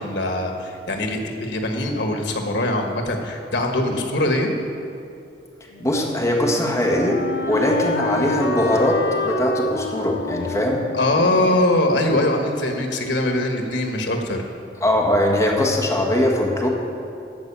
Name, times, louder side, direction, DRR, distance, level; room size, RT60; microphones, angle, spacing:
voice 1, 0.0-4.5 10.9-14.4, left 1 dB, 85° left, 3 dB, 1.5 m, -22 dB
Wind instrument woodwind instrument, 5.7-12.6, left 2 dB, 70° left, 0.8 m, -29 dB
voice 2, 5.8-10.8 14.8-16.7, left 1 dB, 20° left, -1 dB, 1.6 m, -21 dB
14.0 x 4.8 x 8.8 m, 2.6 s
head